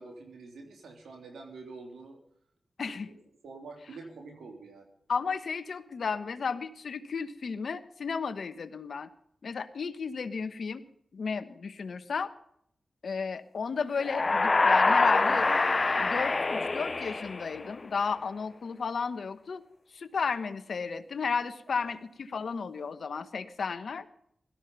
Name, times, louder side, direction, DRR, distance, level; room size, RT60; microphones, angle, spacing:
voice 1, 0.0-2.2 3.0-3.1 3.4-4.9 21.8-21.9, right 3 dB, 90° right, 3 dB, 3.3 m, -46 dB
voice 2, 2.8-3.1 5.1-9.1 9.4-10.8 11.1-12.3 13.0-15.5 16.0-19.6 19.9-24.1, left 5 dB, 75° left, 12 dB, 1.2 m, -33 dB
sound 1, 14.0-17.9, left 3 dB, 45° left, 0.6 m, -25 dB
17.5 x 13.5 x 5.4 m, 0.68 s
cardioid pair, 45°, 0 cm